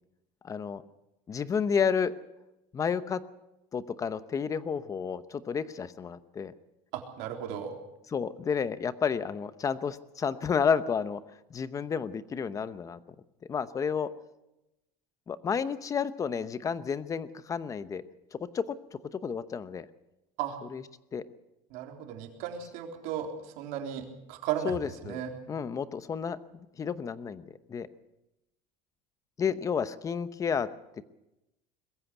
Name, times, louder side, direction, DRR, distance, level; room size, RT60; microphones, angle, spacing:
voice 1, 0.4-0.8 1.3-2.1 2.7-3.2 3.7-6.5 8.1-11.2 11.5-13.0 13.5-14.1 15.3-18.0 18.3-18.6 19.2-19.9 20.7-20.8 21.1-21.2 24.6-25.2 25.5-26.4 26.8-27.9 29.4-30.7, left 6 dB, 20° left, 13 dB, 0.9 m, -31 dB
voice 2, 6.9-7.8 20.4-20.6 21.7-23.3 23.6-24.7 25.0-25.3, right 10 dB, 65° right, 3 dB, 3.7 m, -35 dB
21.5 x 15.0 x 8.1 m, 0.94 s
cardioid pair, 155°, 15 cm